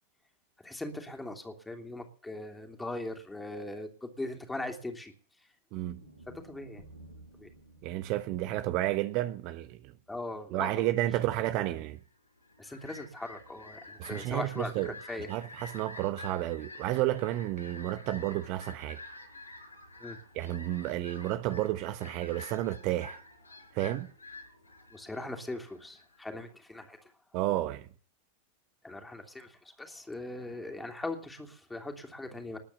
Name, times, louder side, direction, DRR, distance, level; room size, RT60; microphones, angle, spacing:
voice 1, 0.6-5.1 6.4-6.8 7.4-7.5 10.1-10.9 11.6-11.7 12.6-15.3 20.0-20.2 24.9-27.0 28.8-32.6, left 2 dB, 5° left, 3.0 m, -40 dB
voice 2, 5.7-6.0 7.8-9.9 10.5-12.0 14.0-14.9 15.3-19.0 20.3-23.2 23.7-24.1 27.3-27.9, right 15 dB, 40° right, 1.0 m, -31 dB
sound 1, 5.8-10.1, right 1 dB, 75° right, 5.7 m, -55 dB
Fowl, 12.3-26.2, left 2 dB, 80° left, 5.9 m, -49 dB
20.5 x 8.8 x 7.2 m
figure-of-eight pair, 90°, 0 cm